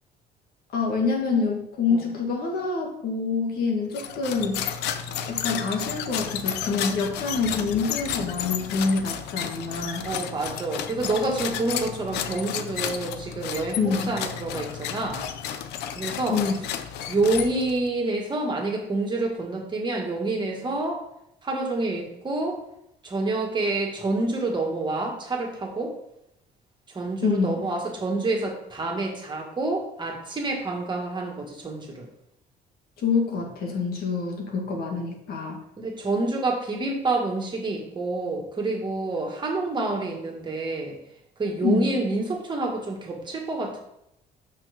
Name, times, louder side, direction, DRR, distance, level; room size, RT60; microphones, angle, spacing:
voice 1, 0.7-4.6 5.3-10.0 13.8-14.2 16.3-16.5 27.2-27.5 33.0-35.6 41.6-41.9, left 4 dB, 65° left, 0 dB, 2.0 m, -26 dB
sound 1, 3.9-17.9, left 9 dB, 85° left, 0.7 m, -32 dB
voice 2, 10.0-15.2 16.0-16.4 17.1-21.0 21.4-22.6 23.0-25.9 26.9-32.1 35.8-41.0 41.4-43.8, right 2 dB, 25° right, 0 dB, 2.0 m, -28 dB
6.0 x 5.7 x 5.2 m, 0.80 s
cardioid pair, 110°, 17 cm